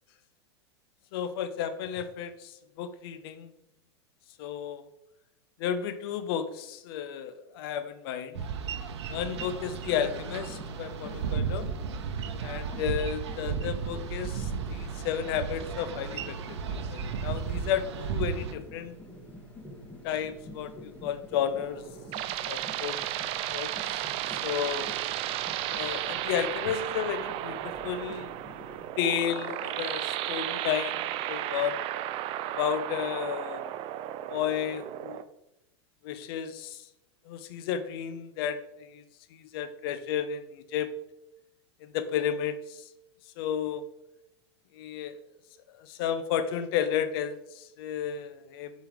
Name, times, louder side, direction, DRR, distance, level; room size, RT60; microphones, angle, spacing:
voice 1, 1.1-3.5 4.4-4.9 5.6-8.5 9.1-11.7 12.4-16.4 16.7-18.9 20.0-21.8 22.5-23.0 23.5-23.7 24.3-24.9 25.7-28.3 29.0-31.8 32.5-33.6 34.3-35.2 36.0-36.9 37.3-39.0 39.3-40.9 41.8-42.8 43.4-43.8 44.7-45.2 45.8-48.7, left 9 dB, 55° left, 11 dB, 0.8 m, -32 dB
Boat Water vehicle, 8.3-18.5, right 6 dB, 70° right, 0.8 m, -34 dB
sound 1, 9.1-28.9, left 1 dB, 10° left, 1.8 m, -48 dB
sound 2, 21.6-35.2, right 13 dB, 40° right, 0.5 m, -34 dB
7.1 x 5.6 x 3.6 m, 0.85 s
hypercardioid pair, 100°, 15 cm